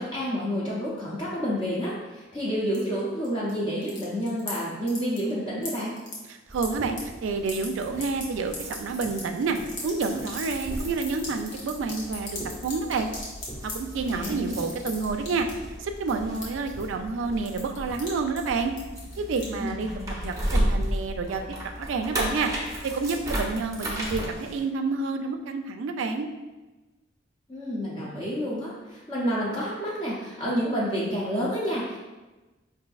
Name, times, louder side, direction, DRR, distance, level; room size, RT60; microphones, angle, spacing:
voice 1, 0.0-5.9 14.1-14.6 19.6-20.1 27.5-32.0, equal, 25° left, -7 dB, 0.6 m, -29 dB
sound 1, 2.7-3.5 3.8-4.6 4.9-5.3 5.6-7.0 7.3-7.7 8.0-13.7 14.1-14.4 14.7-15.6 16.0-17.2 17.5-18.1 18.4-18.5 18.8-19.7, left 3 dB, 65° left, 1.0 m, -38 dB
voice 2, 6.3-9.6 9.8-13.1 13.6-15.5 15.8-18.7 19.2-19.9 20.2-21.4 21.8-22.5 22.9-26.3, right 4 dB, 75° right, 6 dB, 0.3 m, -29 dB
sound 2, 6.5-24.6, equal, 15° right, 0.6 m, -34 dB
5.0 x 2.6 x 2.3 m, 1.1 s
head